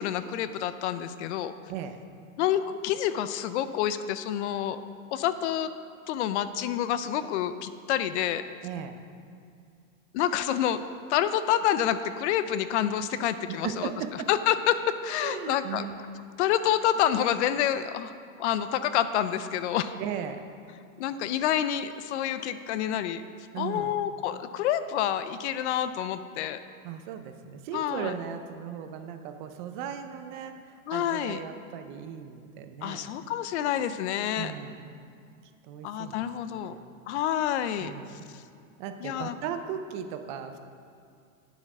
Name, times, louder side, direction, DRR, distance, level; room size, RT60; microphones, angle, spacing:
voice 1, 0.0-1.5 2.4-4.8 5.1-5.7 6.1-8.4 10.1-10.8 11.1-13.9 14.3-15.9 16.4-18.1 18.4-19.9 21.0-23.2 23.6-26.6 27.7-28.1 30.9-31.4 32.8-34.5 35.8-36.8 37.1-37.9 38.3-38.4 39.0-39.4, left 10 dB, 55° left, 12 dB, 0.5 m, -28 dB
voice 2, 8.6-9.0 13.5-14.3 15.2-16.2 20.0-20.5 23.5-24.0 26.8-33.1 34.4-34.8 35.6-36.3 36.5-36.8 37.8-38.1 38.8-40.7, right 8 dB, 35° right, 8 dB, 0.5 m, -37 dB
9.1 x 7.4 x 5.9 m, 2.3 s
supercardioid pair, 160°, 42 cm